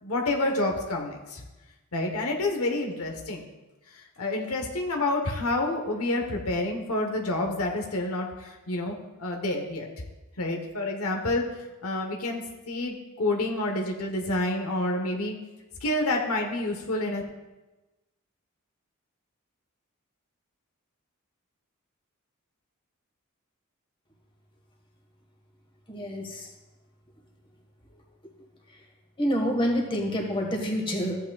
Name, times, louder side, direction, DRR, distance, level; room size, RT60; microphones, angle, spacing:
voice 1, 0.0-1.4 1.9-3.4 3.9-9.9 10.4-15.4 15.8-17.2, left 2 dB, 80° left, 2 dB, 1.1 m, -28 dB
voice 2, 25.9-26.5 29.2-31.2, equal, 25° left, 0 dB, 1.6 m, -27 dB
14.5 x 8.2 x 2.3 m, 1.1 s
head